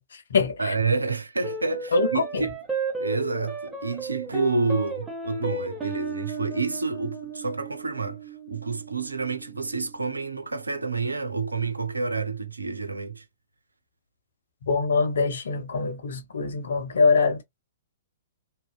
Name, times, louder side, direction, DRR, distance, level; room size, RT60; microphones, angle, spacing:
voice 1, 0.0-0.5 1.9-2.5 14.6-17.4, left 4 dB, 65° left, 0.8 m, -24 dB
voice 2, 0.6-2.5 3.0-13.2, right 4 dB, 80° right, 0.5 m, -29 dB
sound 1, 1.4-10.1, right 3 dB, 10° right, 1.0 m, -34 dB
2.8 x 2.1 x 2.2 m
figure-of-eight pair, 115°, 0 cm